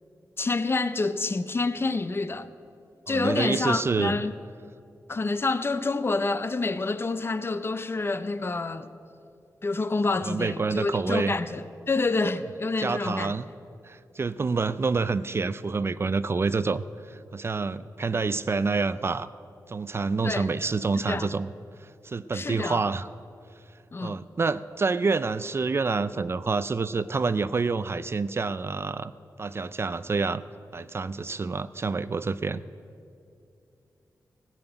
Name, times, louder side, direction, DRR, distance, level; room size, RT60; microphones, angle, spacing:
voice 1, 0.4-2.5 3.1-4.3 5.1-8.9 9.6-13.3 20.2-20.5 21.1-21.3 22.3-22.8 23.9-24.2, left 3 dB, 35° left, 0.5 m, -28 dB
voice 2, 3.1-4.2 10.2-11.4 12.8-13.5 13.8-19.3 19.7-21.5 21.8-23.1 24.0-29.1 29.4-30.4 30.7-32.6, right 4 dB, 35° right, 0.3 m, -27 dB
16.5 x 6.0 x 8.9 m
wide cardioid pair, 110°, 7 cm